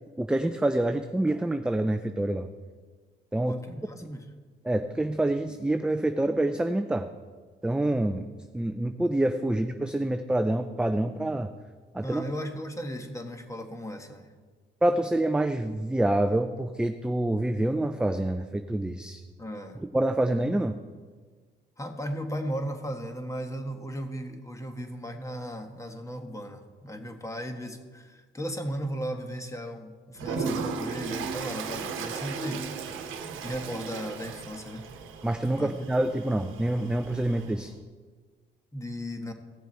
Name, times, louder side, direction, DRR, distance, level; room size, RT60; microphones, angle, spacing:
voice 1, 0.2-2.5 3.3-3.6 4.6-7.1 7.6-8.3 8.5-11.5 11.9-12.2 14.8-19.2 19.8-20.7 35.2-37.7, right 1 dB, 5° right, 8 dB, 0.5 m, -26 dB
voice 2, 3.4-4.3 12.0-14.3 19.4-19.8 21.8-32.7 33.4-34.9 35.5-35.9 38.7-39.3, equal, 15° left, 5 dB, 1.4 m, -36 dB
Toilet flush, 30.2-37.7, right 5 dB, 90° right, 1.0 m, -36 dB
16.5 x 6.9 x 4.4 m, 1.5 s
cardioid pair, 90°, 20 cm